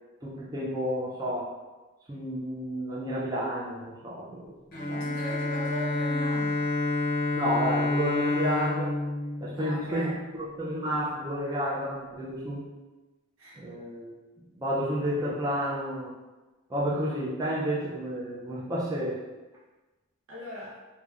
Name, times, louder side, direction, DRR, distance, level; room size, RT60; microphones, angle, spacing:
voice 1, 0.2-1.5 2.1-4.5 4.9-5.0 7.4-8.9 9.4-12.7 13.6-14.1 14.6-16.1 16.7-19.2, equal, 15° right, -6 dB, 0.3 m, -30 dB
Bowed string instrument, 4.7-10.4, left 2 dB, 45° left, 0.6 m, -29 dB
voice 2, 4.9-6.6 9.5-10.1 13.4-13.6 20.3-20.7, equal, 85° right, -7 dB, 1.0 m, -39 dB
2.9 x 2.1 x 2.3 m, 1.2 s
head